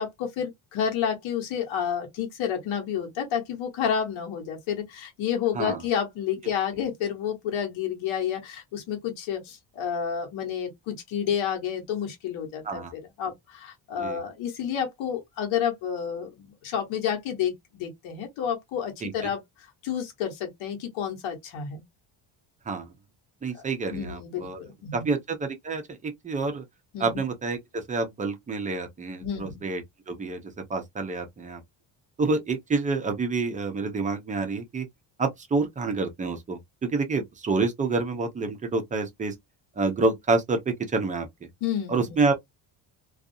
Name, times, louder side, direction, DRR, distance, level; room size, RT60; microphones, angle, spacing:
voice 1, 0.0-19.4 19.8-21.8 23.5-23.6 23.9-25.1 26.9-27.2 29.2-29.6 41.6-42.2, left 8 dB, 85° left, 1.1 m, -30 dB
voice 2, 23.4-24.6 24.9-26.6 27.0-29.8 30.1-31.6 32.2-34.9 35.2-36.6 36.9-39.3 39.8-41.3 41.9-42.4, right 3 dB, 20° right, 0.4 m, -28 dB
2.4 x 2.3 x 2.6 m
cardioid pair, 175°, 46 cm